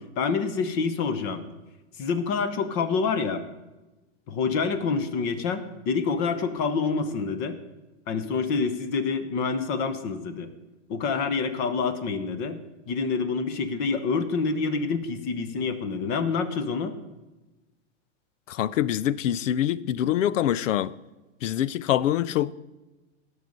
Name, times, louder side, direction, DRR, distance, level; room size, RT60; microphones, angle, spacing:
voice 1, 0.0-1.4 2.0-3.4 4.3-7.6 8.1-10.5 10.9-12.6 12.9-16.9, left 5 dB, 30° left, 0.8 m, -27 dB
voice 2, 18.5-20.9 21.4-22.5, left 11 dB, 90° left, 0.6 m, -25 dB
18.0 x 6.5 x 5.3 m
supercardioid pair, 165°, 37 cm